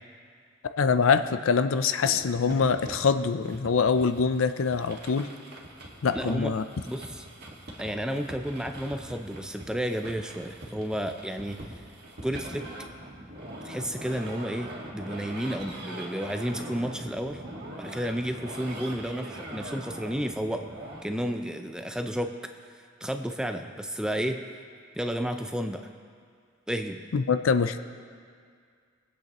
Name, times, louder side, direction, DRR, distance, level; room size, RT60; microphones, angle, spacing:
voice 1, 0.8-5.3 6.0-6.6 27.1-27.8, left 5 dB, 75° left, 10 dB, 0.5 m, -24 dB
sound 1, 2.0-21.0, right 1 dB, 50° right, 1.7 m, -42 dB
voice 2, 6.1-6.5 6.9-7.3 7.8-11.6 12.2-12.7 13.6-17.4 17.8-20.7 21.0-22.3 23.0-24.4 24.9-25.9 26.7-27.0, equal, 5° right, 6 dB, 0.4 m, -31 dB
24.0 x 8.3 x 3.0 m, 2.1 s
head